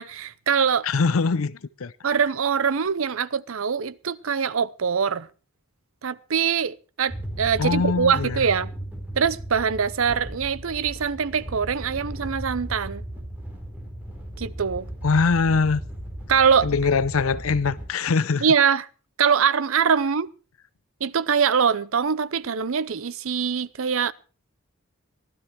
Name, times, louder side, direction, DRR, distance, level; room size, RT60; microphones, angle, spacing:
voice 1, 0.0-0.9 2.0-5.3 6.0-8.7 9.2-13.0 14.4-14.9 16.3-16.7 18.4-18.9 19.2-20.3 21.0-24.1, right 6 dB, 70° right, 0.7 m, -23 dB
voice 2, 0.8-1.9 7.6-8.4 15.0-15.8 16.6-18.4, left 4 dB, 75° left, 0.6 m, -22 dB
sound 1, 7.1-17.9, right 1 dB, 10° right, 4.3 m, -36 dB
15.5 x 12.0 x 4.6 m
head